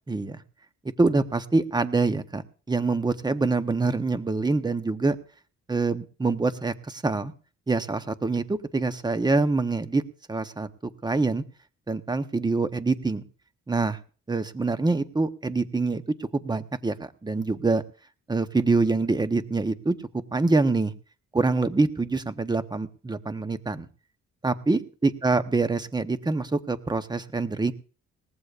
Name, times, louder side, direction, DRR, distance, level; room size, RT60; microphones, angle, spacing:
voice 1, 0.1-0.4 1.0-5.2 5.7-7.3 7.7-10.0 10.3-11.4 11.9-13.2 13.7-14.0 14.3-16.0 16.3-17.8 18.3-20.0 20.3-20.9 21.3-23.9 24.4-27.7, right 3 dB, 15° right, 11 dB, 0.9 m, -25 dB
19.5 x 15.0 x 2.5 m, 0.39 s
cardioid pair, 90°, 30 cm